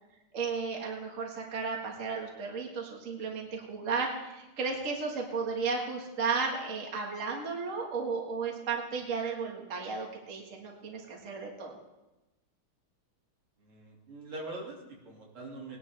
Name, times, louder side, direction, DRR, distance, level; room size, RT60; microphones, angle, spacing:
voice 1, 0.3-11.8, right 4 dB, 40° right, -1 dB, 2.0 m, -34 dB
voice 2, 13.6-15.8, right 2 dB, 80° right, -2 dB, 3.4 m, -43 dB
19.5 x 10.5 x 3.4 m, 1.0 s
omnidirectional pair, 2.3 m